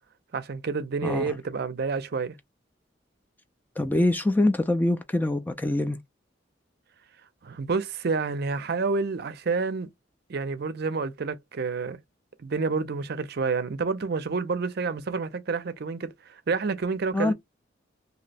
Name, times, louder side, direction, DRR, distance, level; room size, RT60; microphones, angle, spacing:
voice 1, 0.3-2.4 7.4-9.9 10.3-12.0 12.4-17.3, right 4 dB, 55° right, 0.5 m, -29 dB
voice 2, 1.0-1.3 3.8-6.0 17.1-17.3, left 1 dB, 10° left, 0.3 m, -24 dB
2.7 x 2.1 x 4.0 m
head